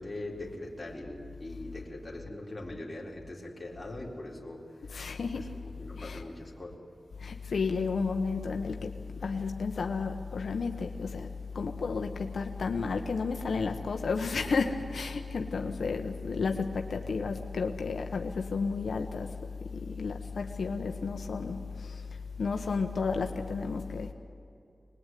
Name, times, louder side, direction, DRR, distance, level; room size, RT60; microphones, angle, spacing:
voice 1, 0.0-4.7 5.6-6.8, left 1 dB, 20° left, 4.1 m, -41 dB
voice 2, 4.9-5.6 5.9-6.2 7.2-24.1, left 4 dB, 75° left, 1.2 m, -32 dB
24.5 x 20.5 x 9.3 m
wide cardioid pair, 130°, 0 cm